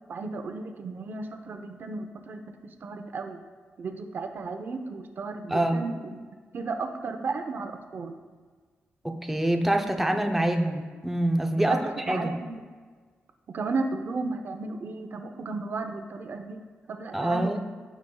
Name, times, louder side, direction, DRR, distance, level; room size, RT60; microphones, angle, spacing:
voice 1, 0.1-3.4 3.8-6.2 6.5-8.1 11.7-12.6 13.5-17.6, right 3 dB, 55° right, 6 dB, 0.7 m, -34 dB
voice 2, 5.5-5.8 9.0-11.8 12.1-12.3 17.1-17.6, right 1 dB, 5° right, 3 dB, 0.6 m, -25 dB
14.5 x 5.1 x 2.3 m, 1.5 s
wide cardioid pair, 115°, 4 cm